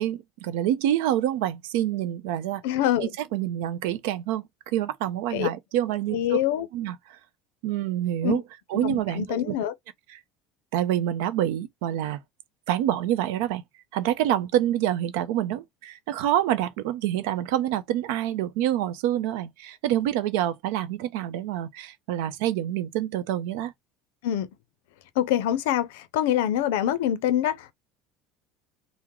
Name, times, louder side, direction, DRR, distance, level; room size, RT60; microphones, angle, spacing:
voice 1, 0.0-2.6 3.0-6.4 6.7-7.2 7.6-8.4 8.7-9.5 10.1-10.2 10.7-12.2 12.7-13.6 13.9-23.7, right 12 dB, 80° right, 0.5 m, -27 dB
voice 2, 2.6-3.1 5.3-5.5 6.1-6.7 8.2-8.4 8.7-9.7 24.2-24.5 25.2-27.7, left 11 dB, 90° left, 0.4 m, -25 dB
3.5 x 2.0 x 3.0 m
cardioid pair, 140°, 0 cm